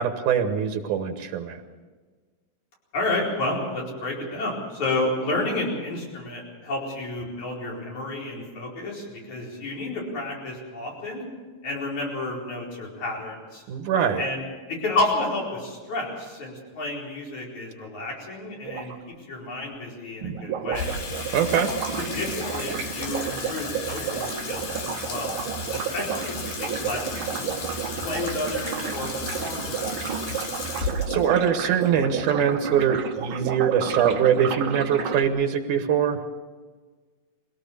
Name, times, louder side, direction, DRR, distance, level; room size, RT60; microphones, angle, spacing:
voice 1, 0.0-1.6 13.7-14.2 21.3-21.7 30.8-36.2, right 8 dB, 80° right, 6 dB, 2.8 m, -23 dB
voice 2, 2.9-11.2 11.6-13.6 14.2-21.0 22.0-25.4 25.7-27.6 28.0-29.1 29.4-30.2, left 2 dB, 65° left, -2 dB, 5.9 m, -31 dB
sound 1, 18.7-19.0 20.2-35.2, right 8 dB, 60° right, 1.5 m, -32 dB
Water tap faucet / Sink (filling or washing), 20.7-33.1, left 3 dB, 90° left, 4.2 m, -34 dB
23.0 x 17.0 x 6.8 m, 1.4 s
omnidirectional pair, 3.6 m